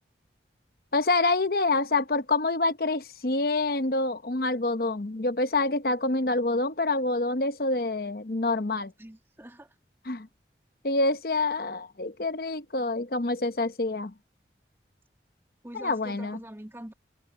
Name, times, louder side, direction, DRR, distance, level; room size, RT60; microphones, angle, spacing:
voice 1, 0.9-8.9 10.0-10.3 10.8-14.1 15.7-16.4, left 2 dB, 55° left, 0.9 m, -27 dB
voice 2, 9.0-9.7 15.6-16.9, right 1 dB, 15° right, 1.8 m, -44 dB
head